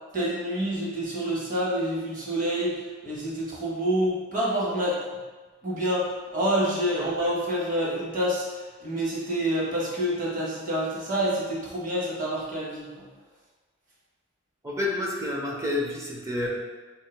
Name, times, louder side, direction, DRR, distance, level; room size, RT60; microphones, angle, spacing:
voice 1, 0.1-5.0 5.6-13.1, equal, 45° right, -5 dB, 1.2 m, -27 dB
voice 2, 7.0-7.3 14.6-16.5, left 2 dB, 15° right, -2 dB, 0.6 m, -30 dB
2.8 x 2.8 x 4.4 m, 1.3 s
head